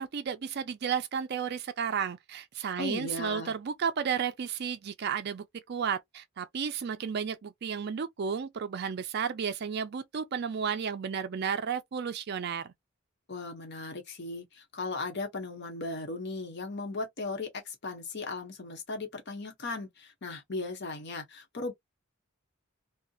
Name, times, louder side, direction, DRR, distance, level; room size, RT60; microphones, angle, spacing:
voice 1, 0.0-12.7, right 7 dB, 50° right, 0.4 m, -33 dB
voice 2, 2.8-3.5 13.3-21.7, left 3 dB, 55° left, 0.8 m, -37 dB
2.7 x 2.0 x 2.3 m
head